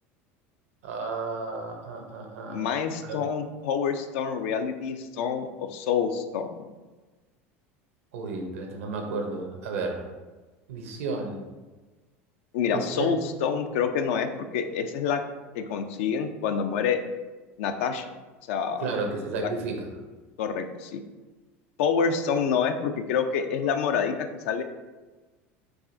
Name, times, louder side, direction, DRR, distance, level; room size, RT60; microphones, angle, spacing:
voice 1, 0.8-2.7 3.0-3.2 8.1-10.1 10.7-11.4 12.7-13.2 18.8-20.0, right 4 dB, 85° right, 3 dB, 0.6 m, -32 dB
voice 2, 2.5-6.7 12.5-15.2 15.5-17.0 17.6-18.1 18.5-18.8 19.4-19.5 20.4-21.0 21.8-24.2 24.4-24.6, left 6 dB, 75° left, 7 dB, 0.4 m, -27 dB
4.7 x 2.4 x 2.6 m, 1.2 s
hypercardioid pair, 90°, 7 cm